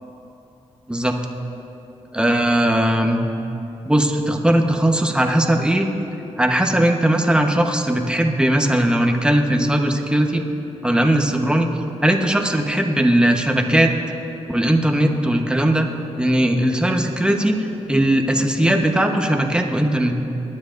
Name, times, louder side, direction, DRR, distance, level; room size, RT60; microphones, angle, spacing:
voice 1, 2.1-3.2 3.8-5.9 6.4-10.4 10.8-11.7 12.0-13.9 14.5-15.9 16.2-17.6 17.9-20.1, right 1 dB, 5° right, 3 dB, 1.1 m, -18 dB
20.5 x 9.8 x 2.6 m, 2.8 s
cardioid pair, 65°, 12 cm